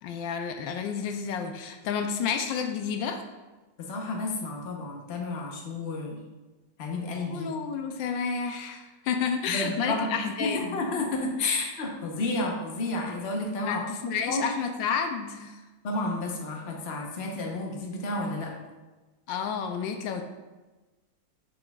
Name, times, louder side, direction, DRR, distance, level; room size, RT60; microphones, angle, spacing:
voice 1, 0.0-3.2 7.3-10.9 13.6-15.6 19.3-20.2, left 6 dB, 80° left, 5 dB, 1.3 m, -30 dB
voice 2, 3.8-6.2 6.8-7.5 9.5-10.1 10.4-13.8 14.3-14.5 15.8-18.5, left 2 dB, 45° left, 0 dB, 1.0 m, -31 dB
7.6 x 6.2 x 2.4 m, 1.2 s
omnidirectional pair, 2.0 m